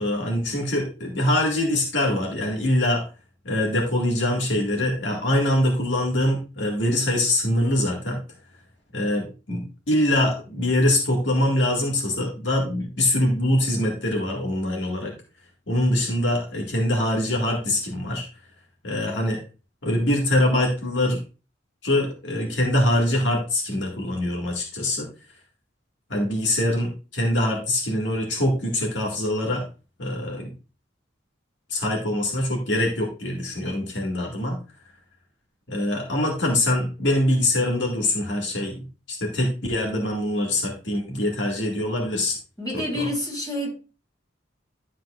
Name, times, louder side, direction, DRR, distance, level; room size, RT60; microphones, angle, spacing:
voice 1, 0.0-3.1 3.4-8.2 8.9-15.1 15.7-18.2 18.8-19.4 19.8-21.2 21.8-25.1 26.1-29.7 30.0-30.5 31.7-34.6 35.7-42.4 42.7-43.1, left 1 dB, 70° left, 1.9 m, -24 dB
voice 2, 42.6-43.7, left 1 dB, 20° left, 4.3 m, -28 dB
12.0 x 7.4 x 2.5 m
head